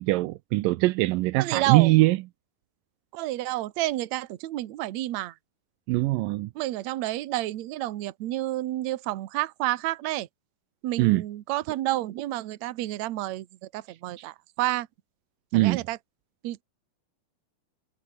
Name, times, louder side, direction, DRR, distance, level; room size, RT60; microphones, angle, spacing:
voice 1, 0.0-2.2 5.9-6.5 11.0-11.2 14.2-14.3 15.5-15.8, right 19 dB, 90° right, 1.9 m, -22 dB
voice 2, 1.4-1.9 3.1-5.3 6.6-10.3 10.8-14.9 15.5-16.0 16.4-16.6, right 16 dB, 70° right, 1.7 m, -30 dB
omnidirectional pair, 4.6 m